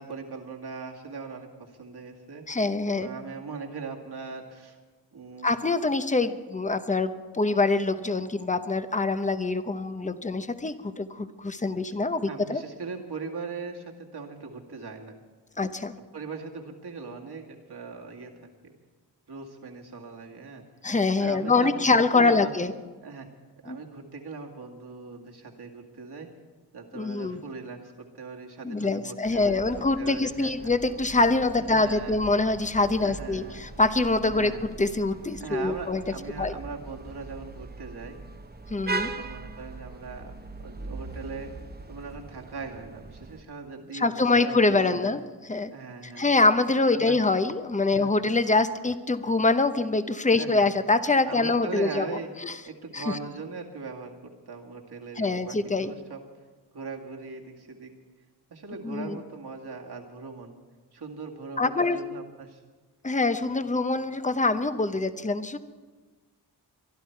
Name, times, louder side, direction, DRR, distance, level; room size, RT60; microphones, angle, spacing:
voice 1, 0.0-2.4 3.0-4.8 5.1-5.5 12.3-15.2 16.1-18.7 19.3-20.6 21.2-22.6 23.0-23.3 23.6-26.3 26.7-30.7 31.6-32.2 33.0-33.7 34.3-34.6 35.4-38.2 39.0-40.3 40.6-41.5 41.9-45.1 45.7-46.3 46.9-47.2 47.9-48.1 50.3-50.7 51.3-52.3 52.7-56.2 56.7-57.9 58.5-60.5 60.9-62.6, right 4 dB, 65° right, 1 dB, 2.1 m, -40 dB
voice 2, 2.5-3.1 5.4-12.6 15.6-15.9 20.8-22.7 23.7-23.8 26.9-27.4 28.6-34.5 34.8-36.0 36.4-36.5 38.7-39.1 43.9-45.2 45.5-45.7 46.2-52.5 52.9-53.2 55.2-55.9 58.8-59.2 61.6-62.0 63.0-65.6, left 3 dB, 15° left, 11 dB, 0.8 m, -24 dB
sound 1, 29.2-43.4, right 3 dB, 25° right, 0.9 m, -40 dB
24.0 x 11.5 x 4.6 m, 1.3 s
cardioid pair, 70°, 42 cm